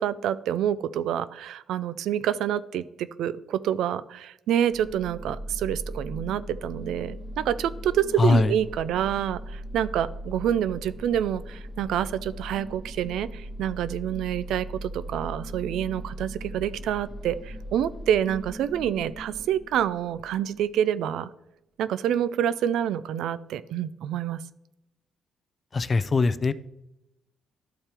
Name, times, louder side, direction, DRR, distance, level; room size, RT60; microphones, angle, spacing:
voice 1, 0.0-21.3 21.8-24.4, right 10 dB, 80° right, 16 dB, 0.3 m, -27 dB
sound 1, 4.7-20.6, equal, 15° right, 2.1 m, -39 dB
voice 2, 8.2-8.5 25.7-26.5, left 3 dB, 35° left, 15 dB, 0.4 m, -21 dB
12.5 x 4.4 x 3.4 m, 0.90 s
cardioid pair, 90°, 0 cm